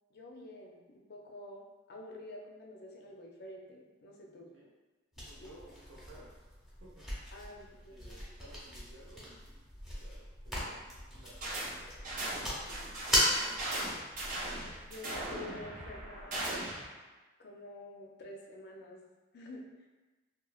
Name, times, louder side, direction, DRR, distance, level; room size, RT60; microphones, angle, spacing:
voice 1, 0.1-1.6 1.9-4.5 5.4-5.5 7.3-8.1 14.6-16.4 17.4-19.1 19.3-19.9, left 1 dB, 55° left, -1 dB, 0.4 m, -48 dB
sound 1, 5.1-15.1, equal, ahead, 0.7 m, -38 dB
voice 2, 5.2-7.5 7.9-9.6 9.9-13.7, right 1 dB, 80° right, -5 dB, 0.7 m, -57 dB
sound 2, 11.4-11.7 12.0-16.9, right 1 dB, 45° right, 0.6 m, -38 dB
2.9 x 2.2 x 2.3 m, 1.2 s
head